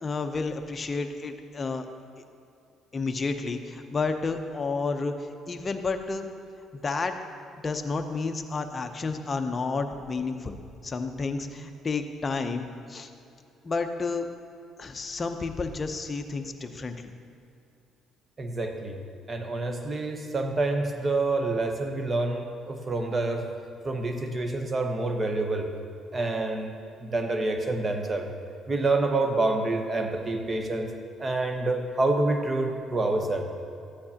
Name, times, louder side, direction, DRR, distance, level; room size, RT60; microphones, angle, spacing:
voice 1, 0.0-1.9 2.9-6.3 6.7-7.2 7.6-13.1 13.6-14.3 14.8-17.1, left 4 dB, 30° left, 6 dB, 0.7 m, -31 dB
voice 2, 18.4-19.0 19.3-23.5 23.8-25.7 26.1-26.7 27.0-28.3 28.7-30.9 31.2-33.4, right 2 dB, 30° right, 5 dB, 0.9 m, -27 dB
13.0 x 8.7 x 2.9 m, 2.6 s
cardioid pair, 105°, 0 cm